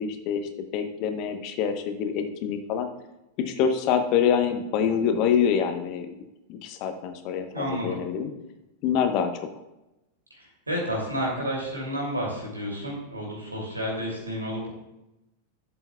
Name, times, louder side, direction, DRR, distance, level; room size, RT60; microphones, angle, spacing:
voice 1, 0.0-2.9 3.4-6.1 6.5-8.3 8.8-9.4, left 7 dB, 40° left, 7 dB, 0.9 m, -26 dB
voice 2, 7.5-8.0 10.3-14.7, equal, 80° right, -2 dB, 2.6 m, -31 dB
11.5 x 7.7 x 2.3 m, 0.94 s
figure-of-eight pair, 90°, 0 cm